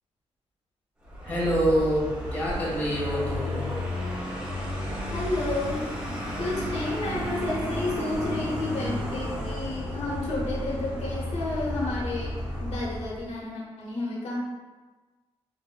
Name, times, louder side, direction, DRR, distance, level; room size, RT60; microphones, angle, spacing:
Vehicle, 1.0-13.3, left 1 dB, 10° right, 1.0 m, -32 dB
voice 1, 1.2-3.7, equal, 15° left, -7 dB, 1.4 m, -26 dB
voice 2, 5.1-5.8 6.4-12.3 12.6-14.4, left 2 dB, 80° left, -4 dB, 1.0 m, -31 dB
7.6 x 2.7 x 2.3 m, 1.3 s
wide cardioid pair, 160°, 11 cm